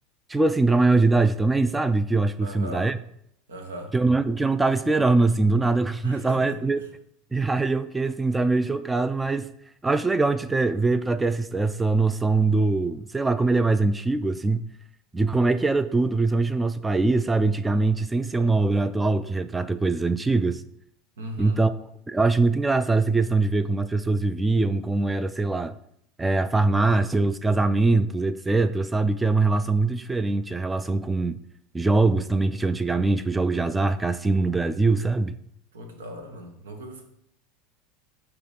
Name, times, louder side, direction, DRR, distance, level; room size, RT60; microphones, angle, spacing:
voice 1, 0.3-3.0 3.9-6.8 7.3-9.5 9.8-14.6 15.1-20.6 21.4-21.7 22.1-25.7 26.2-31.4 31.7-35.3, right 3 dB, 15° right, 0.3 m, -22 dB
voice 2, 2.4-2.9 3.5-3.9 6.0-6.9 21.2-21.6 35.7-37.0, right 1 dB, 90° right, 1.2 m, -38 dB
6.7 x 2.9 x 5.7 m
hypercardioid pair, 90°, 0 cm